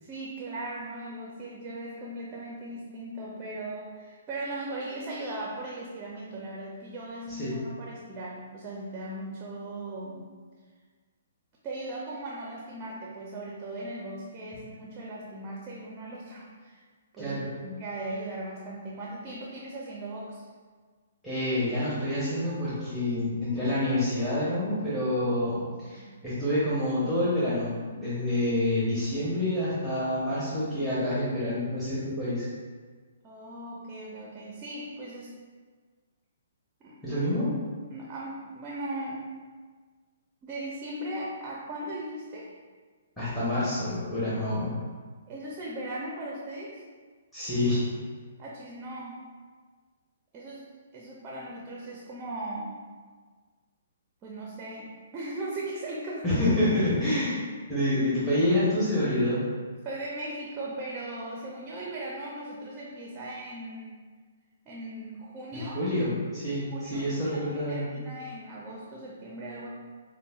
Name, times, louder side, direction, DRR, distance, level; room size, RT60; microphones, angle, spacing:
voice 1, 0.0-10.3 11.6-16.8 17.1-20.5 25.9-26.4 33.2-35.3 36.8-37.3 37.9-39.3 40.4-42.5 45.3-46.8 48.4-49.2 50.3-52.8 54.2-56.2 59.8-64.0 64.7-65.8 66.7-69.7, right 1 dB, 25° right, -3 dB, 0.5 m, -38 dB
voice 2, 21.2-32.5 37.0-37.5 43.2-44.7 47.3-47.8 56.2-57.4 57.7-59.4 65.5-67.9, left 1 dB, 5° left, -12 dB, 1.0 m, -27 dB
5.1 x 2.1 x 2.4 m, 1.5 s
hypercardioid pair, 130°, 0 cm